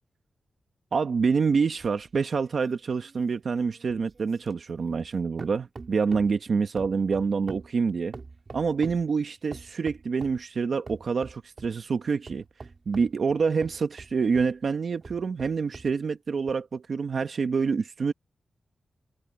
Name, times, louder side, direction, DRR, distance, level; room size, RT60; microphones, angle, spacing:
voice 1, 0.9-8.1 8.5-12.4 12.9-18.1, right 5 dB, 55° right, 1.1 m, -27 dB
sound 1, 1.8-5.1 5.4-6.4 6.8-9.1 9.5-10.4 10.9-11.8 12.3-14.6 15.0-16.0 16.5-16.6, right 4 dB, 40° right, 3.3 m, -45 dB
wide cardioid pair, 130°, 0 cm